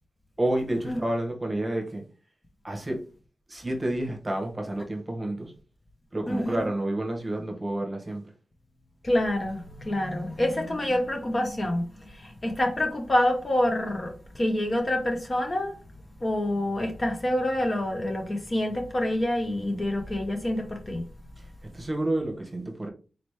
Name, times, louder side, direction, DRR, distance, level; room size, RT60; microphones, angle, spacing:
voice 1, 0.4-2.0 2.6-3.0 3.5-5.5 6.1-8.2 21.7-22.9, right 1 dB, 15° right, 1.0 m, -29 dB
voice 2, 6.3-6.7 9.0-15.8 16.2-21.0, left 1 dB, 25° left, 0.7 m, -27 dB
4.2 x 3.0 x 3.3 m
wide cardioid pair, 170°, 0 cm